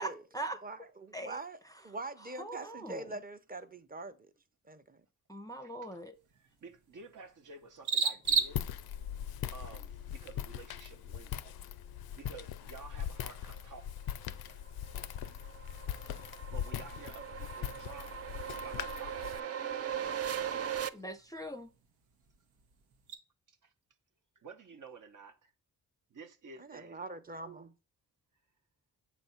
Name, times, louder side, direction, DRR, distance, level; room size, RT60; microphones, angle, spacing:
voice 1, 0.0-0.6 1.1-1.4 2.4-3.1 5.3-6.2 20.9-21.7, right 1 dB, 10° left, 0.6 m, -41 dB
voice 2, 0.6-4.3 4.7-5.0 26.6-27.7, right 2 dB, 25° right, 0.8 m, -44 dB
voice 3, 5.6-5.9 6.3-8.6 9.5-11.6 12.1-14.0 16.5-18.3 18.5-19.6 23.5-23.7 24.4-25.5 26.1-27.0, right 5 dB, 55° right, 0.9 m, -51 dB
sound 1, 6.1-23.1, right 5 dB, 90° right, 0.9 m, -42 dB
Walk footsteps, 8.2-19.4, left 10 dB, 80° left, 0.5 m, -41 dB
sound 2, 14.3-20.9, right 8 dB, 40° right, 0.5 m, -39 dB
7.2 x 2.6 x 5.7 m
cardioid pair, 55°, 36 cm